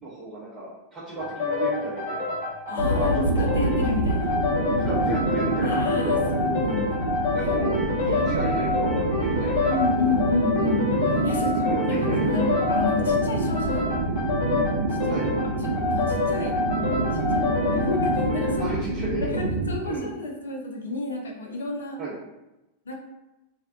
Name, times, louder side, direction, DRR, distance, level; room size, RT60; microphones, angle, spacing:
voice 1, 0.0-2.3 2.7-3.6 4.8-6.2 6.7-6.9 7.3-7.7 8.0-9.7 9.9-10.3 11.6-12.5 15.1-15.3 18.6-19.3 19.8-20.1 22.0-22.2, right 2 dB, 20° right, -10 dB, 0.7 m, -33 dB
sound 1, 1.2-18.6, left 4 dB, 50° left, 1.0 m, -27 dB
voice 2, 2.7-4.4 5.6-7.0 9.7-13.9 14.9-15.3 15.8-16.6 17.1-18.8 19.1-22.0 22.9-23.0, left 3 dB, 70° left, 1 dB, 0.4 m, -30 dB
sound 2, 2.8-19.8, right 2 dB, 65° right, 0.4 m, -26 dB
2.5 x 2.1 x 2.4 m, 0.96 s
figure-of-eight pair, 90°, 0 cm